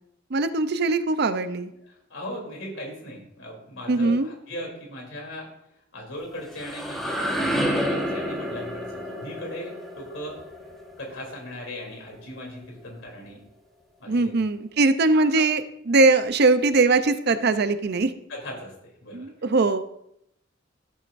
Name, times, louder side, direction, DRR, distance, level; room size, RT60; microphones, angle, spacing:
voice 1, 0.3-1.7 3.9-4.3 14.1-18.1 19.1-19.8, right 3 dB, 55° right, 11 dB, 0.6 m, -21 dB
voice 2, 1.9-5.5 5.9-10.4 11.0-13.4 14.0-14.3 15.1-15.4 18.3-18.7 19.0-19.3, equal, 75° left, 0 dB, 3.2 m, -38 dB
sound 1, 6.2-12.0, equal, ahead, 1.3 m, -30 dB
14.0 x 7.9 x 2.6 m, 0.76 s
head